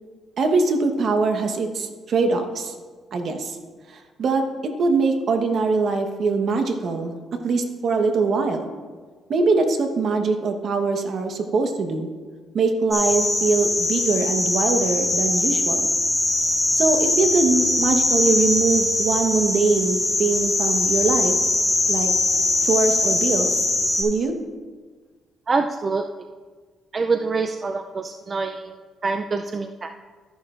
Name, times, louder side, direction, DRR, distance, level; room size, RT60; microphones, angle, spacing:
voice 1, 0.4-2.7 3.1-3.6 3.9-8.7 9.3-12.1 12.5-15.9 16.7-21.3 21.9-22.1 22.6-23.7 24.0-24.3, right 4 dB, 60° right, 6 dB, 1.1 m, -22 dB
sound 1, 12.9-24.0, left 2 dB, 20° left, 3.4 m, -22 dB
voice 2, 25.5-26.1 26.9-29.9, right 4 dB, 35° right, 6 dB, 0.4 m, -25 dB
13.0 x 10.5 x 2.5 m, 1.5 s
cardioid pair, 90°, 0 cm